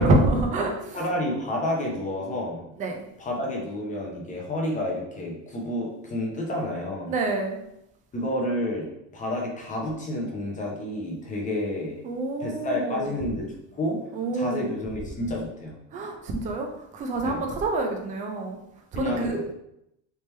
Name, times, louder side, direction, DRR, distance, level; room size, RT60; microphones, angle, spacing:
voice 1, 0.0-1.0 2.8-3.0 7.1-7.6 12.0-13.1 14.1-14.7 15.9-18.6 18.9-19.4, right 2 dB, 20° right, 3 dB, 0.3 m, -26 dB
voice 2, 0.9-2.7 3.2-7.1 8.1-8.9 9.1-12.0 12.4-13.5 13.7-14.0 14.3-15.7 17.2-17.4 18.9-19.4, left 1 dB, 20° left, -1 dB, 0.6 m, -29 dB
3.4 x 2.9 x 3.2 m, 0.82 s
cardioid pair, 150°, 40 cm